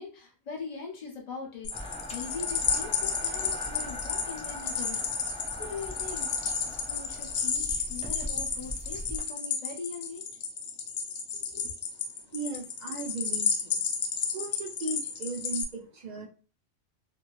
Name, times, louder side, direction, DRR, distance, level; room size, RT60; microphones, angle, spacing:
voice 1, 0.0-5.0 5.3-10.3 11.3-11.7, left 5 dB, 40° left, 0 dB, 0.8 m, -41 dB
sound 1, 1.6-15.6, left 6 dB, 75° left, 0.9 m, -32 dB
sound 2, 1.7-9.2, left 1 dB, 10° left, 0.3 m, -41 dB
voice 2, 12.3-13.8 14.2-16.3, right 3 dB, 55° right, -1 dB, 0.5 m, -37 dB
2.7 x 2.6 x 2.9 m, 0.37 s
omnidirectional pair, 1.3 m